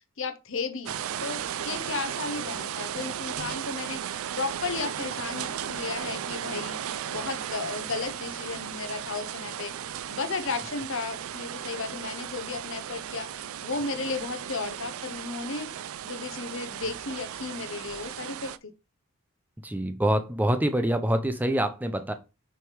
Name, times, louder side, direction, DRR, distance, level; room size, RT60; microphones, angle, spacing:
voice 1, 0.2-9.7 10.1-13.3 13.6-15.7 16.0-18.7, left 4 dB, 60° left, 0.9 m, -34 dB
sound 1, 0.9-18.6, right 9 dB, 70° right, 0.4 m, -36 dB
voice 2, 19.6-22.1, right 1 dB, 10° right, 0.5 m, -25 dB
6.2 x 3.4 x 4.6 m
head